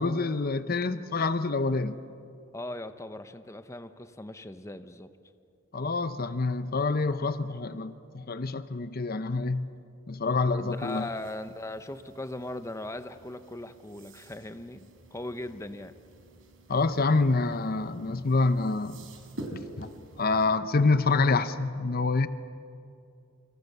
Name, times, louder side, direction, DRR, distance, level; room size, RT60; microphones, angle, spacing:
voice 1, 0.0-2.0 5.7-9.7 10.1-11.1 16.7-19.0 19.5-19.9 20.2-22.3, left 3 dB, 45° left, 12 dB, 0.8 m, -27 dB
voice 2, 2.5-5.1 10.6-15.9, left 1 dB, 15° left, 10 dB, 0.8 m, -39 dB
sound 1, 10.6-20.5, right 1 dB, 75° right, 3.8 m, -48 dB
28.5 x 26.0 x 6.8 m, 2.5 s
head